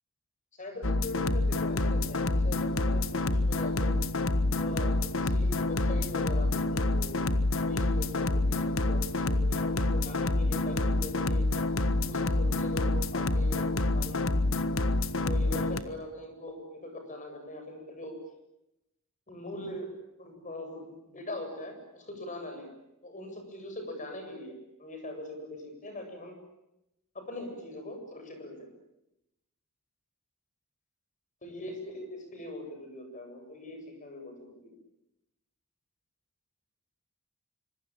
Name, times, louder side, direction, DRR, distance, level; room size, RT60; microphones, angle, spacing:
voice 1, 0.5-4.0 4.6-7.2 7.5-11.4 12.0-14.4 15.1-18.2 19.3-19.9 20.2-22.7 23.0-26.4 27.1-28.7 31.4-34.8, left 1 dB, 35° left, 5 dB, 7.9 m, -41 dB
sound 1, 0.8-15.8, left 2 dB, 65° left, 1.4 m, -27 dB
26.0 x 25.0 x 9.0 m, 0.87 s
head